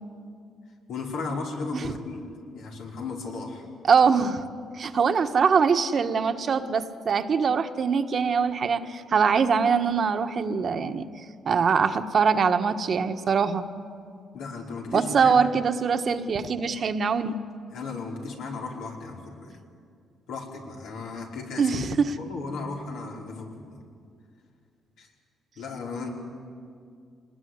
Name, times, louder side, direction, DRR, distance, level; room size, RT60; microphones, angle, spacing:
voice 1, 0.9-2.2 2.5-3.6 14.3-15.5 17.7-19.5 20.3-21.8 22.2-23.8 25.0-25.1 25.6-26.1, left 4 dB, 85° left, -1 dB, 5.2 m, -35 dB
voice 2, 3.8-4.4 4.8-11.0 11.4-13.6 14.9-17.4 21.6-22.0, right 6 dB, 50° right, 8 dB, 1.4 m, -23 dB
25.5 x 20.5 x 9.7 m, 2.3 s
cardioid pair, 90°, 0 cm